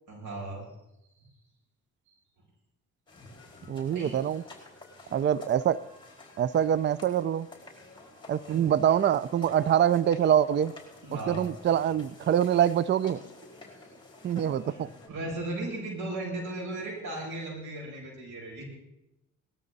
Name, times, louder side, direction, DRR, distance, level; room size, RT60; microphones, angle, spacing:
voice 1, 0.1-0.7 1.2-1.3 3.9-4.2 8.5-8.7 11.0-11.4 14.6-18.6, right 2 dB, 75° right, -2 dB, 7.4 m, -36 dB
sound 1, 3.1-15.1, left 2 dB, 15° left, 4.5 m, -50 dB
voice 2, 3.7-4.4 5.1-5.8 6.4-7.5 8.3-10.7 11.3-13.2 14.2-14.9, right 9 dB, 40° right, 18 dB, 0.4 m, -25 dB
19.0 x 13.0 x 4.0 m, 0.90 s
cardioid pair, 90°, 30 cm